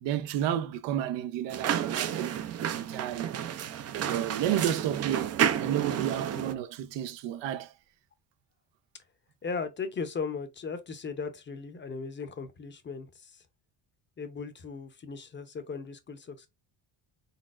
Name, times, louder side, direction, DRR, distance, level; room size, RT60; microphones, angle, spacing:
voice 1, 0.0-2.4 2.7-3.3 4.0-7.7, right 11 dB, 80° right, 0.7 m, -31 dB
sound 1, 1.5-6.5, right 9 dB, 35° right, 0.5 m, -31 dB
voice 2, 9.4-13.4 14.2-16.5, left 5 dB, 25° left, 0.6 m, -37 dB
4.2 x 4.2 x 2.4 m
cardioid pair, 145°, 43 cm